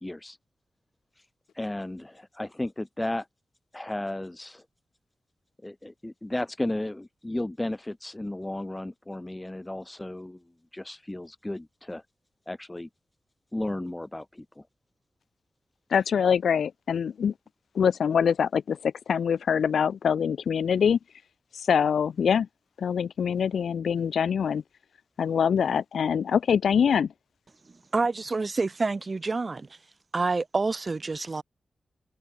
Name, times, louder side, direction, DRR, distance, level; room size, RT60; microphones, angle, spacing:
voice 1, 0.0-0.4 1.2-1.3 1.5-3.3 3.7-4.6 5.6-10.4 10.7-12.0 12.5-12.9 13.5-14.6, left 1 dB, 20° left, 1.6 m, -34 dB
voice 2, 15.9-17.3 17.8-21.0 21.7-22.5 22.8-24.6 25.2-27.1, left 7 dB, 90° left, 0.3 m, -24 dB
voice 3, 27.9-29.7 30.1-31.4, right 3 dB, 45° right, 3.4 m, -27 dB
cardioid pair, 55°, 0 cm